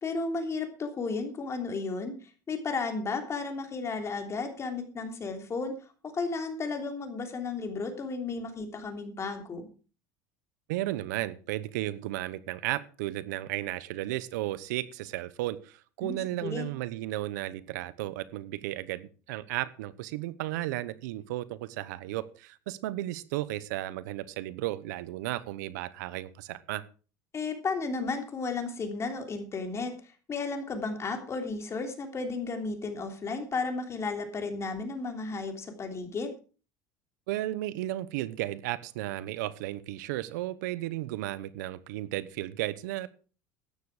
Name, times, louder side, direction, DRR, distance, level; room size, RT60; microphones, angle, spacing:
voice 1, 0.0-2.1 2.5-5.7 6.1-9.7 16.0-16.7 27.3-29.9 30.3-36.3, left 4 dB, 30° left, 5 dB, 3.2 m, -33 dB
voice 2, 10.7-26.8 37.3-43.1, right 15 dB, 85° right, 17 dB, 0.9 m, -34 dB
13.0 x 9.7 x 4.9 m, 0.37 s
supercardioid pair, 110°, 9 cm